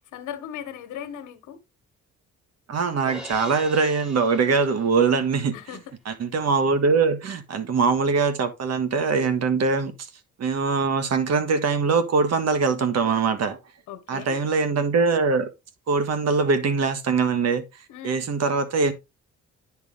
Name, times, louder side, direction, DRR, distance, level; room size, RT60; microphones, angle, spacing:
voice 1, 0.1-1.6 5.5-5.9 13.9-14.4 17.9-18.3, left 9 dB, 85° left, 1.3 m, -38 dB
voice 2, 2.7-5.6 6.0-9.9 10.4-13.6 14.1-15.5 15.9-17.6 18.0-18.9, right 4 dB, 60° right, 1.6 m, -22 dB
Crash cymbal, 3.1-5.3, left 1 dB, ahead, 2.6 m, -42 dB
10.0 x 4.8 x 3.6 m
cardioid pair, 90°, 30 cm